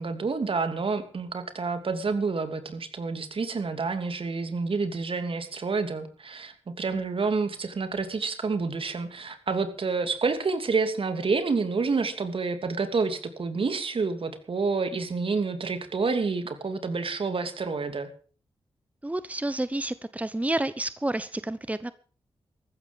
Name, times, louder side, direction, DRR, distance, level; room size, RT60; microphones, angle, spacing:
voice 1, 0.0-18.1, right 4 dB, 60° right, 9 dB, 2.9 m, -28 dB
voice 2, 19.0-21.9, right 1 dB, 15° right, 14 dB, 1.0 m, -29 dB
15.0 x 13.0 x 5.3 m, 0.41 s
cardioid pair, 50°, 10 cm